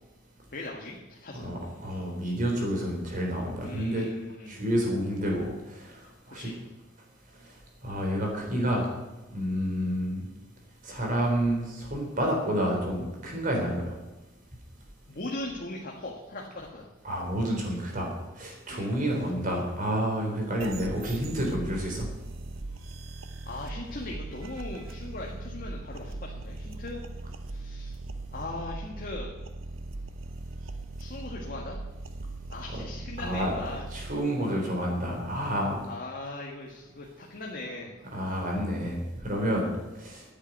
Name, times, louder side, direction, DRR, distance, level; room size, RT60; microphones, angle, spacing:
voice 1, 0.5-1.5 3.6-4.6 6.3-6.6 15.1-16.9 18.7-19.0 23.5-27.0 27.5-28.0 28.3-29.3 31.0-31.8 32.5-33.8 35.8-37.9, left 2 dB, 45° left, -2 dB, 1.8 m, -39 dB
voice 2, 1.4-4.1 4.5-6.0 6.3-6.5 7.8-8.9 9.3-10.2 10.8-13.9 17.0-18.1 18.4-22.1 33.2-33.5 33.9-35.8 38.1-39.7 40.0-40.2, equal, 40° right, 0 dB, 3.8 m, -29 dB
sound 1, 20.6-34.1, right 2 dB, 85° right, 0.9 m, -39 dB
11.0 x 8.1 x 9.2 m, 1.1 s
head